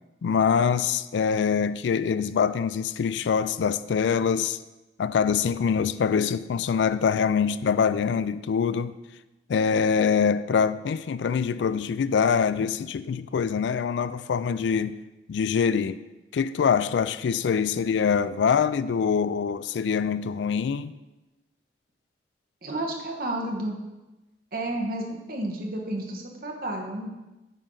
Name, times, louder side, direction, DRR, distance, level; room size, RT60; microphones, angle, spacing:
voice 1, 0.2-4.6 5.0-9.0 9.5-15.0 15.3-16.0 16.3-20.9, left 6 dB, 90° left, 0.3 m, -24 dB
voice 2, 22.6-23.7 24.5-27.1, right 1 dB, 55° right, 1.3 m, -31 dB
9.1 x 5.4 x 3.8 m
head